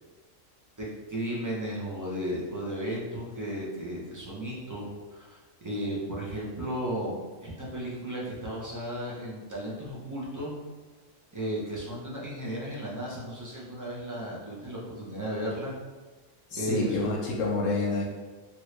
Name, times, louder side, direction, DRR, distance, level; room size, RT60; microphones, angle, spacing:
voice 1, 0.8-10.5 11.3-15.8 16.6-17.1, equal, 20° right, -5 dB, 0.5 m, -34 dB
voice 2, 16.5-18.0, left 2 dB, 80° left, -2 dB, 1.0 m, -28 dB
3.0 x 2.6 x 3.2 m, 1.3 s
omnidirectional pair, 1.3 m